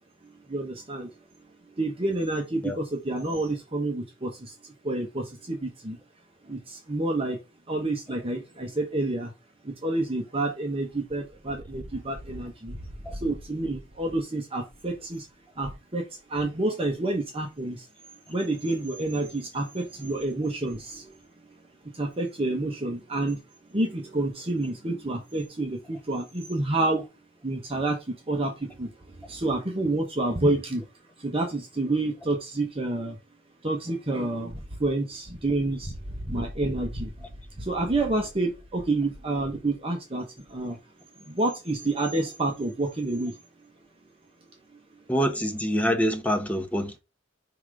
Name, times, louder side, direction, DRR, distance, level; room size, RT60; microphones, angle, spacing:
voice 1, 0.5-1.1 1.8-4.3 4.8-6.0 6.5-7.4 7.7-9.3 9.6-12.8 13.2-15.2 15.6-16.0 16.3-17.8 18.3-21.0 22.0-23.4 23.7-27.0 27.4-28.0 28.3-28.9 29.3-30.8 31.2-33.2 33.6-34.5 34.8-35.9 36.3-37.1 37.6-40.2 40.5-40.8 41.3-43.3, right 2 dB, 30° right, 1.1 m, -28 dB
voice 2, 45.1-47.0, equal, 10° left, 1.1 m, -25 dB
5.8 x 3.4 x 4.8 m
head